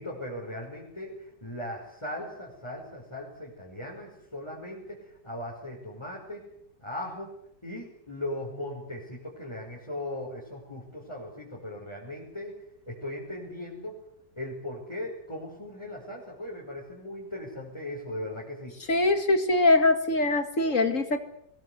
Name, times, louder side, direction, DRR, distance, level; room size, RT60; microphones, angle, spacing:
voice 1, 0.0-6.4 6.8-7.3 7.6-12.6 12.9-14.0 14.4-18.8, left 1 dB, 15° left, -4 dB, 5.7 m, -38 dB
voice 2, 18.9-21.2, left 2 dB, 45° left, 8 dB, 2.3 m, -23 dB
22.5 x 21.0 x 8.2 m, 0.72 s
omnidirectional pair, 1.9 m